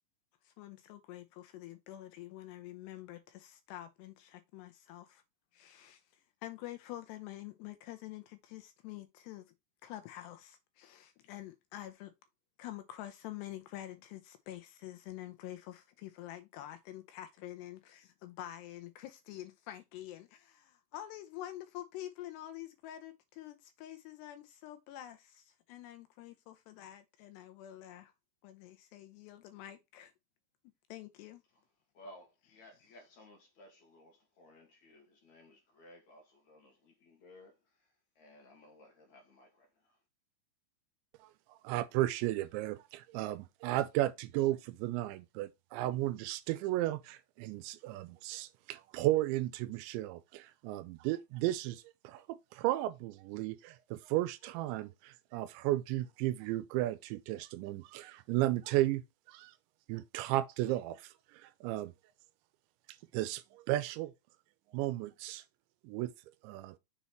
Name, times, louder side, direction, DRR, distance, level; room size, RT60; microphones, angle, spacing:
voice 1, 0.4-5.2 5.5-6.0 6.4-9.5 9.8-12.1 12.6-28.1 28.4-30.1 30.9-31.4, left 14 dB, 85° left, 2.5 m, -47 dB
voice 2, 31.9-40.0, left 1 dB, 55° left, 2.2 m, -58 dB
voice 3, 41.5-59.5 59.9-61.1 61.3-61.9 63.1-64.1 64.7-65.4 65.8-66.1 66.4-66.8, right 15 dB, 85° right, 2.8 m, -34 dB
6.9 x 4.2 x 4.4 m
omnidirectional pair, 5.3 m